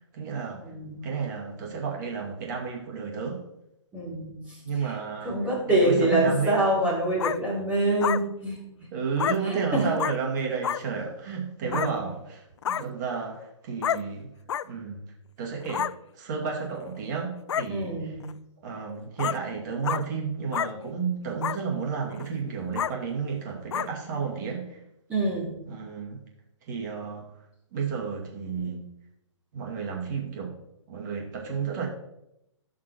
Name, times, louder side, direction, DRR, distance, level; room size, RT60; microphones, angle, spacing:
voice 1, 0.1-0.6 1.0-3.4 4.6-5.4 5.7-6.9 8.9-14.3 14.6-15.0 15.4-18.2 18.6-24.8 25.7-26.2 26.7-27.3 27.7-28.9 29.5-30.5 30.9-31.9, right 5 dB, 35° right, -1 dB, 2.5 m, -32 dB
voice 2, 0.7-1.1 3.9-4.9 5.2-8.6 9.4-9.9 11.6-11.9 17.7-18.2 25.1-25.5, right 1 dB, 10° right, -6 dB, 3.0 m, -26 dB
sound 1, 7.2-7.4 8.0-8.2 9.2-9.4 10.0-10.1 10.6-10.8 11.7-11.9 12.6-12.8 13.8-14.0 14.5-14.6 15.6-15.9 16.8-16.9 17.5-17.7 18.2-18.3 19.2-19.4 19.8-20.0 20.5-20.7 21.4-21.6 22.1-22.3 22.8-22.9 23.7-23.9, left 9 dB, 65° left, 0.4 m, -28 dB
16.5 x 6.0 x 3.1 m, 0.84 s
hypercardioid pair, 160°, 16 cm